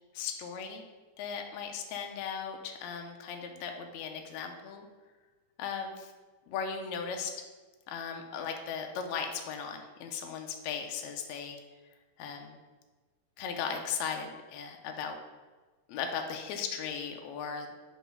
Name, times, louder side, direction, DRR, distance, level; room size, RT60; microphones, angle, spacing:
voice 1, 0.1-0.8 1.2-4.9 5.6-6.1 6.5-7.4 7.9-11.6 12.2-12.6 13.4-15.2 15.9-17.7, left 6 dB, 80° left, 3 dB, 1.6 m, -37 dB
5.1 x 4.0 x 5.3 m, 1.3 s
omnidirectional pair, 3.9 m